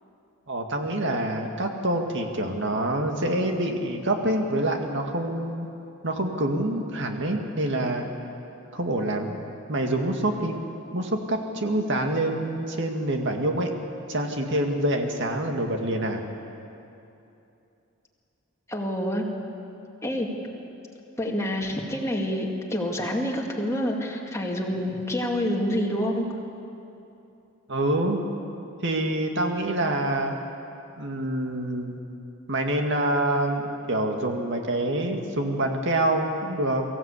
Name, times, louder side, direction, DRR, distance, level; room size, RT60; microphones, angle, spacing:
voice 1, 0.5-5.7 6.0-8.1 8.7-9.4 9.7-10.6 10.9-13.7 14.1-16.2 27.7-28.2 28.8-30.4 31.0-32.0 32.5-36.8, right 1 dB, 60° right, 3 dB, 2.1 m, -26 dB
voice 2, 18.7-19.2 20.0-20.3 21.2-26.2, equal, 15° left, 0 dB, 2.2 m, -27 dB
23.5 x 15.5 x 8.4 m, 2.8 s
head